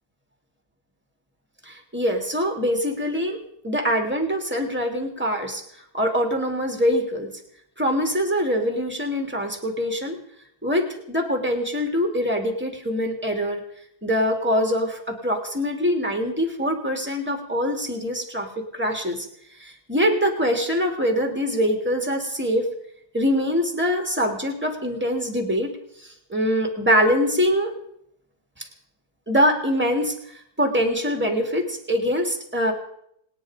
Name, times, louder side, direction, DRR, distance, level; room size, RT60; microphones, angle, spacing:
voice 1, 1.7-3.4 3.6-5.6 5.9-7.3 7.8-10.2 10.6-13.6 14.0-19.3 19.6-22.7 23.1-25.7 26.3-27.7 29.3-30.1 30.6-32.7, equal, 5° right, 4 dB, 2.8 m, -23 dB
27.0 x 9.8 x 5.2 m, 0.71 s
omnidirectional pair, 2.2 m